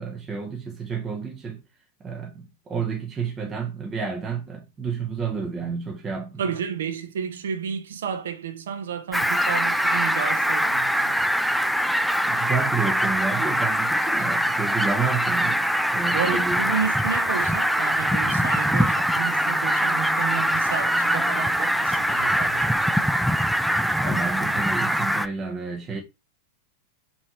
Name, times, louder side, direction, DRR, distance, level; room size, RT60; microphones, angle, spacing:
voice 1, 0.0-1.6 2.0-6.5 12.2-15.6 15.9-16.7 24.0-26.0, right 5 dB, 25° right, 1.1 m, -30 dB
voice 2, 6.4-11.2 16.1-23.1, right 7 dB, 75° right, 0.7 m, -32 dB
Fowl, 9.1-25.3, equal, ahead, 0.3 m, -23 dB
5.6 x 2.8 x 3.0 m
hypercardioid pair, 100°, 0 cm